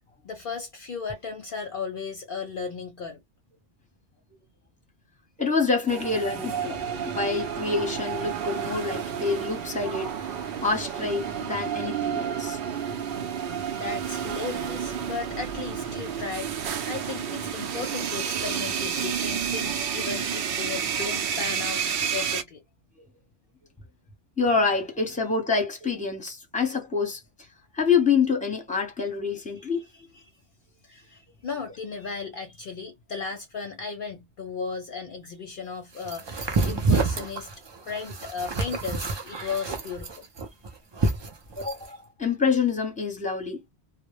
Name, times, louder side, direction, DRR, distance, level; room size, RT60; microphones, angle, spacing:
voice 1, 0.2-3.2 13.8-21.8 22.1-22.6 25.2-25.3 29.6-30.2 30.8-40.2, left 5 dB, 60° left, 0.7 m, -36 dB
voice 2, 5.4-10.1 10.6-12.6 24.4-27.2 27.7-29.9 41.6-43.7, left 5 dB, 10° left, 0.8 m, -26 dB
sound 1, 5.9-22.4, right 7 dB, 65° right, 0.7 m, -30 dB
sound 2, 36.0-41.9, right 3 dB, 45° right, 0.3 m, -28 dB
2.0 x 2.0 x 3.0 m
omnidirectional pair, 1.1 m